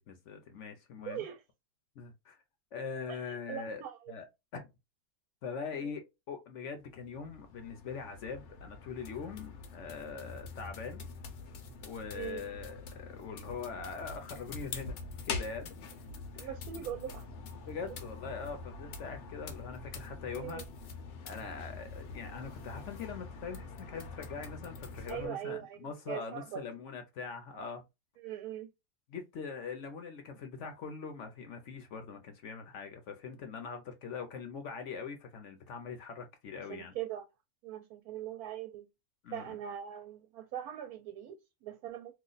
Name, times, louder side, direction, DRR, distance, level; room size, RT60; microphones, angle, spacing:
voice 1, 0.0-1.3 2.0-2.4 2.7-3.8 4.1-4.2 4.5-4.7 5.4-11.1 11.8-15.0 15.2-15.9 16.3-16.5 17.7-20.6 21.2-27.8 29.1-36.9 39.2-39.6, left 5 dB, 60° left, 0.9 m, -42 dB
voice 2, 1.1-1.4 3.1-4.1 5.7-5.9 12.1-12.4 16.4-17.3 20.3-20.6 25.1-26.6 28.2-28.7 36.7-37.2 37.6-38.9 39.3-42.1, right 11 dB, 75° right, 1.0 m, -41 dB
sound 1, 6.8-25.3, left 4 dB, 85° left, 1.3 m, -45 dB
3.0 x 2.2 x 3.9 m
omnidirectional pair, 1.6 m